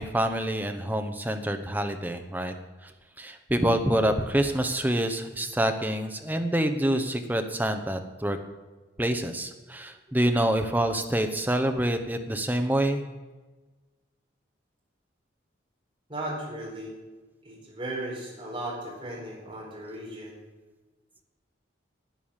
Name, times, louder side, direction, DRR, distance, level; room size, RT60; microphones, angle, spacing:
voice 1, 0.0-2.5 2.8-2.9 3.2-8.4 9.0-13.0, right 1 dB, 10° right, 6 dB, 0.8 m, -26 dB
voice 2, 16.1-17.0 17.4-20.4, right 1 dB, 25° right, -4 dB, 4.6 m, -36 dB
11.5 x 9.1 x 7.3 m, 1.3 s
head